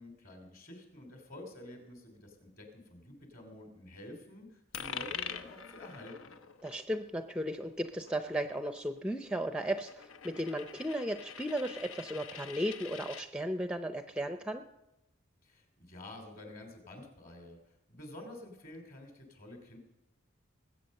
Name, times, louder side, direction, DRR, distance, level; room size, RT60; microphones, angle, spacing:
voice 1, 0.0-6.3 15.4-17.6 17.9-19.8, left 1 dB, 40° left, 4 dB, 3.1 m, -49 dB
Coin (dropping), 4.7-13.3, left 7 dB, 90° left, 0.9 m, -46 dB
voice 2, 6.6-14.6, equal, 5° right, 8 dB, 0.5 m, -35 dB
20.5 x 8.3 x 6.6 m, 0.92 s
head